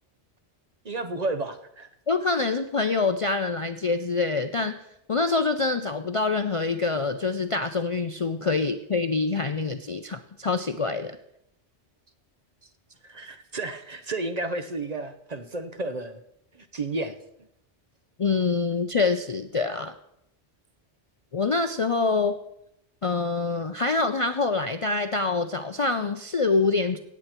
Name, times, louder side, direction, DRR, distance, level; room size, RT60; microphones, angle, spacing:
voice 1, 0.8-1.9 13.0-16.2 16.5-17.2, right 2 dB, 40° right, 9 dB, 0.8 m, -32 dB
voice 2, 2.1-4.8 5.1-11.1 18.2-19.9 21.3-22.4 23.0-27.0, left 3 dB, 45° left, 8 dB, 0.5 m, -25 dB
17.0 x 8.4 x 4.4 m, 0.79 s
omnidirectional pair, 1.2 m